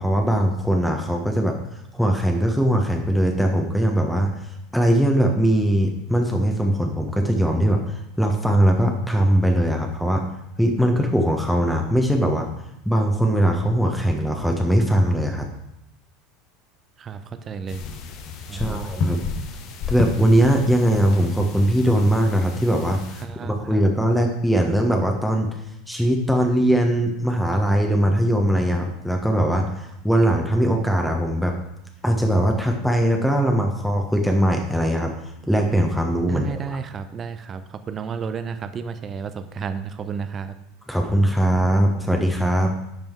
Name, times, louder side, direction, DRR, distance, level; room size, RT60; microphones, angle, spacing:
voice 1, 0.0-1.5 1.9-4.3 4.7-10.3 10.6-12.5 12.8-15.5 18.5-19.2 19.9-25.6 25.9-31.6 32.0-35.1 35.5-36.8 40.9-42.8, equal, ahead, 2 dB, 1.3 m, -20 dB
voice 2, 17.0-17.8 18.5-18.9 23.2-23.8 36.3-40.6, right 6 dB, 30° right, 10 dB, 0.7 m, -32 dB
sound 1, 17.7-23.2, left 5 dB, 45° left, 1.0 m, -32 dB
10.5 x 5.4 x 4.7 m, 0.83 s
figure-of-eight pair, 75°, 0 cm